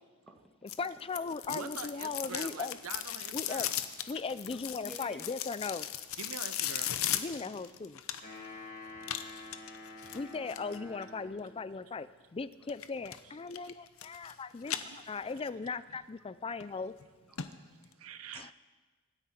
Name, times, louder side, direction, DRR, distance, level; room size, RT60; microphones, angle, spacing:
voice 1, 0.6-2.8 3.3-3.7 4.1-5.9 7.1-8.0 10.1-14.8 15.1-16.9 18.3-18.5, left 4 dB, 25° left, 15 dB, 0.4 m, -38 dB
sound 1, 0.7-8.5 9.0-10.8 12.7-13.2 13.5-14.3 14.6-15.5 15.9-16.0 16.6-16.7 17.0-17.1 17.4-17.5 17.8-17.9, left 11 dB, 65° left, 0.8 m, -37 dB
voice 2, 1.5-3.7 6.2-6.9 7.4-7.5 14.9-15.0 18.0-18.5, right 6 dB, 70° right, 11 dB, 0.7 m, -44 dB
voice 3, 4.8-5.3 8.2-9.6 10.6-10.7 15.0-15.1 17.3-17.4, equal, ahead, 0 dB, 1.7 m, -54 dB
sound 2, 8.2-11.6, left 2 dB, 50° left, 5.9 m, -48 dB
24.5 x 10.0 x 4.3 m, 1.4 s
head